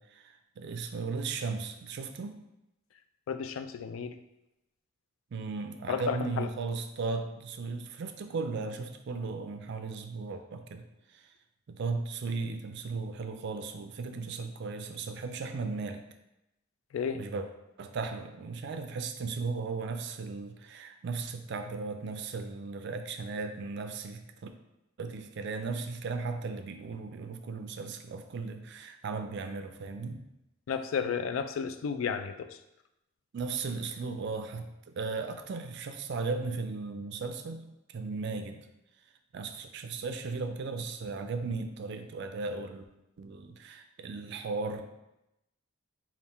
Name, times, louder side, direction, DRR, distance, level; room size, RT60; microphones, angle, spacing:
voice 1, 0.0-2.4 5.3-10.9 11.1-11.2 11.7-16.0 17.1-17.5 17.8-24.5 25.0-30.3 33.3-38.7 39.3-42.8 43.2-44.8, right 4 dB, 60° right, 7 dB, 0.4 m, -36 dB
voice 2, 3.3-4.1 5.9-6.5 16.9-17.2 30.7-32.5, left 6 dB, 80° left, 9 dB, 0.3 m, -32 dB
3.5 x 2.4 x 4.2 m, 0.90 s
head